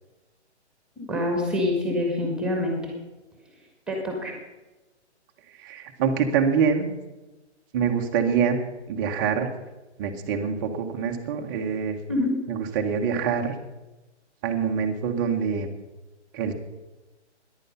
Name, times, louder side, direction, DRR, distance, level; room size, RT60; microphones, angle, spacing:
voice 1, 1.0-2.9 3.9-4.3 12.1-12.4, left 1 dB, ahead, 1 dB, 1.9 m, -26 dB
voice 2, 5.5-6.9 7.7-8.6 8.9-9.5 10.0-12.0 12.5-13.5 14.4-15.7 16.3-16.5, right 6 dB, 20° right, 4 dB, 0.9 m, -25 dB
14.0 x 11.0 x 5.5 m, 1.1 s
hypercardioid pair, 160°, 35 cm